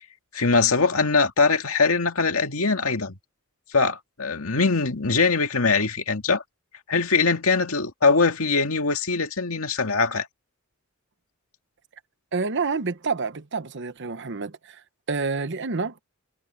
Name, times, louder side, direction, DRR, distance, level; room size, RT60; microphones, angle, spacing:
voice 1, 0.3-3.2 3.7-6.4 6.9-10.3, left 4 dB, 80° left, 2.1 m, -22 dB
voice 2, 12.3-14.8 15.1-16.0, right 4 dB, 55° right, 1.0 m, -28 dB
head